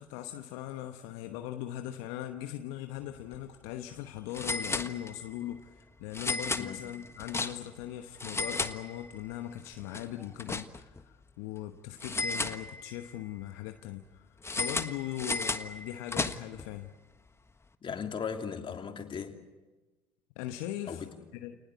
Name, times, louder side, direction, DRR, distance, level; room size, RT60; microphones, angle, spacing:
voice 1, 0.0-16.9 20.4-21.0 21.3-21.6, left 12 dB, 75° left, 1.1 m, -40 dB
sound 1, 3.2-3.3 3.6-3.7 4.3-5.4 6.1-7.8 8.1-9.3 9.6-11.0 12.0-13.1 14.4-16.7, left 3 dB, 20° left, 1.4 m, -34 dB
voice 2, 17.8-19.4 20.9-21.1, left 6 dB, 40° left, 2.9 m, -37 dB
29.5 x 19.5 x 8.4 m
hypercardioid pair, 60°, 13 cm